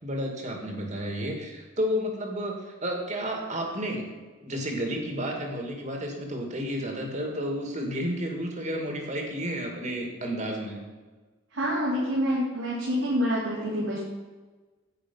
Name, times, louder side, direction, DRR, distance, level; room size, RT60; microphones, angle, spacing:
voice 1, 0.0-4.1 4.4-10.8, equal, 40° right, 2 dB, 2.2 m, -31 dB
voice 2, 11.5-14.0, equal, 90° right, -8 dB, 3.7 m, -27 dB
10.5 x 8.7 x 5.5 m, 1.3 s
head